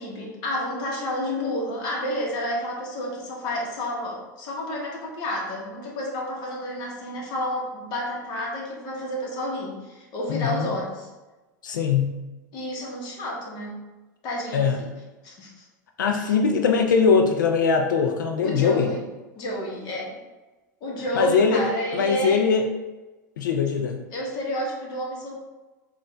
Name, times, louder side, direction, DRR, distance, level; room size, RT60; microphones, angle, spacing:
voice 1, 0.0-11.1 12.5-13.8 14.2-14.9 15.2-15.6 16.1-16.3 18.4-19.0 19.3-20.2 20.8-22.4 24.1-25.3, equal, 45° left, -2 dB, 1.3 m, -30 dB
voice 2, 10.3-10.7 11.6-12.2 14.5-14.8 16.0-18.9 21.1-21.6 21.9-22.7 23.4-24.0, left 5 dB, 80° left, 4 dB, 0.6 m, -21 dB
4.2 x 2.6 x 3.4 m, 1.1 s
hypercardioid pair, 100°, 10 cm